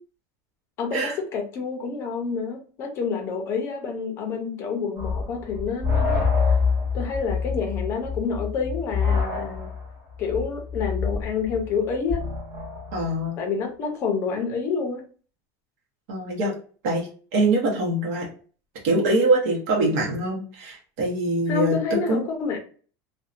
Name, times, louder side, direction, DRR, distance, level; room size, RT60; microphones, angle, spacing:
voice 1, 0.8-6.6 6.9-9.7 10.2-12.2 13.4-15.0 21.5-22.6, left 5 dB, 30° left, 3 dB, 0.5 m, -28 dB
sound 1, 5.0-13.1, left 5 dB, 25° right, 1.0 m, -26 dB
voice 2, 12.9-13.4 16.1-16.5 16.8-18.3 18.8-22.2, right 2 dB, 60° right, -1 dB, 0.8 m, -23 dB
2.6 x 2.1 x 2.4 m, 0.41 s
supercardioid pair, 175°, 9 cm